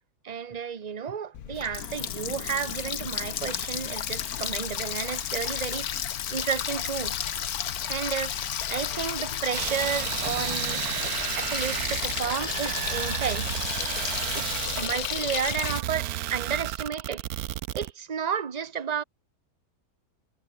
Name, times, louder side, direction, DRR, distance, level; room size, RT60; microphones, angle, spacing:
voice 1, 0.2-5.9 6.3-7.2 7.9-13.5 14.3-17.2 17.7-19.0, right 7 dB, 30° right, 1.0 m, -32 dB
Water tap faucet, 1.3-15.8, left 9 dB, 65° left, 1.5 m, -32 dB
sound 1, 6.2-10.9 11.2-11.8, left 10 dB, 80° left, 1.7 m, -47 dB
sound 2, 9.5-17.9, right 13 dB, 70° right, 1.1 m, -32 dB
omnidirectional pair, 1.7 m